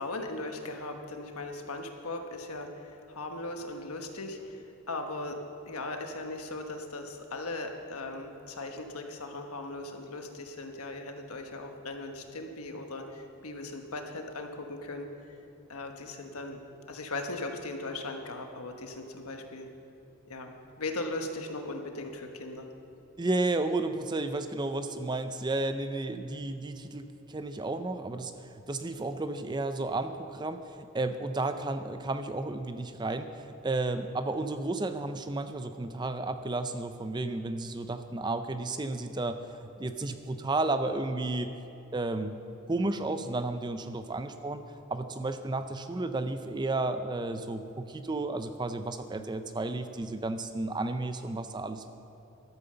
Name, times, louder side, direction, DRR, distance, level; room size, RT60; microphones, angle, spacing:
voice 1, 0.0-5.4 5.7-15.1 15.7-16.6 16.9-19.7 20.3-22.6, left 2 dB, 80° left, 4 dB, 1.3 m, -38 dB
voice 2, 23.2-39.4 39.8-41.5 41.9-42.3 42.7-44.6 44.9-51.9, right 2 dB, 20° right, 9 dB, 0.4 m, -32 dB
12.5 x 9.1 x 6.8 m, 2.9 s
head